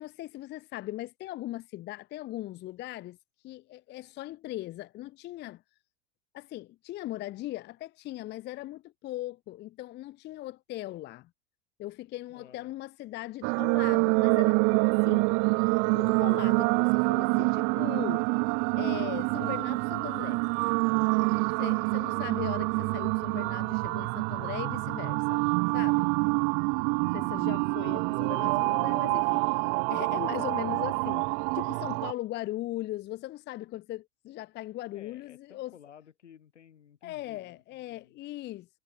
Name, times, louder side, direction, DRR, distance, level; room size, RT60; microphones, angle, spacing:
voice 1, 0.0-3.2 3.4-5.6 6.3-11.3 11.8-15.3 15.9-18.3 18.7-20.4 21.6-25.4 25.7-26.1 27.0-31.2 31.5-35.7 37.0-38.7, left 15 dB, 30° left, 0.7 m, -39 dB
voice 2, 12.3-12.7 14.7-14.8 25.6-26.3 26.6-26.9 29.9-30.1 30.9-31.1 34.9-38.2, left 9 dB, 75° left, 6.2 m, -55 dB
sound 1, 13.4-32.1, right 39 dB, 35° right, 0.4 m, -26 dB
figure-of-eight pair, 85°, 36 cm